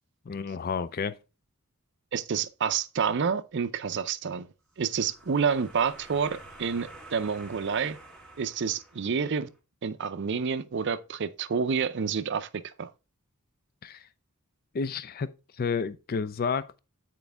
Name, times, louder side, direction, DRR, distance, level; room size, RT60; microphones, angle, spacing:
voice 1, 0.3-1.1 13.8-14.0 14.7-15.3 15.6-16.8, left 5 dB, 45° left, 0.4 m, -30 dB
voice 2, 2.1-4.5 4.8-8.0 8.4-9.5 9.8-12.9, right 6 dB, 55° right, 0.5 m, -29 dB
sound 1, 4.7-9.5, right 2 dB, 5° left, 1.8 m, -49 dB
9.4 x 4.5 x 3.3 m
head